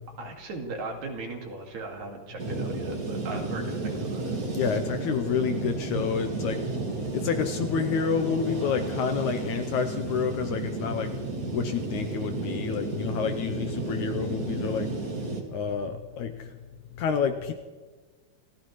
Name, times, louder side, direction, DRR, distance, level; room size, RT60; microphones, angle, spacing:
voice 1, 0.2-4.4, right 3 dB, 60° right, 1 dB, 3.4 m, -38 dB
sound 1, 2.4-15.4, right 2 dB, 30° right, 1.9 m, -32 dB
voice 2, 4.5-6.6 7.1-11.2 11.5-14.9 15.5-16.6 17.0-17.5, left 6 dB, 75° left, 7 dB, 1.9 m, -29 dB
29.5 x 15.0 x 3.2 m, 1.3 s
omnidirectional pair, 4.0 m